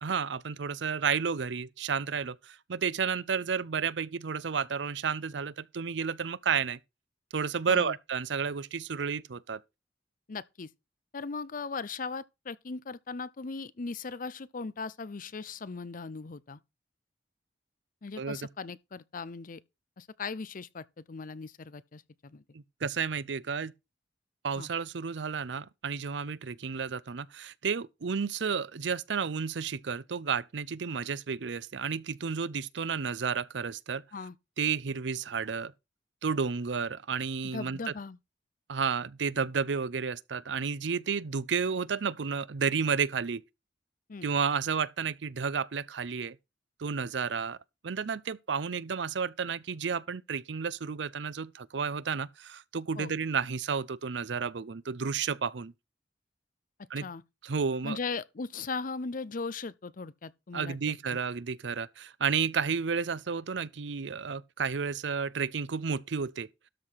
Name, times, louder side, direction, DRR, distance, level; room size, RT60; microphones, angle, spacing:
voice 1, 0.0-6.8 7.3-9.6 18.2-18.4 22.5-23.7 24.4-34.0 34.6-35.7 36.2-37.9 38.7-43.4 44.2-46.4 46.8-47.6 47.8-55.7 56.9-57.1 57.4-58.0 60.5-66.5, right 6 dB, 75° right, 0.6 m, -31 dB
voice 2, 10.3-10.7 11.1-16.6 18.0-19.6 20.0-22.4 24.6-24.7 34.1-34.4 37.5-38.2 44.1-44.3 53.0-53.1 57.0-57.2 57.8-61.2, left 4 dB, 50° left, 0.6 m, -38 dB
12.5 x 4.8 x 5.7 m
head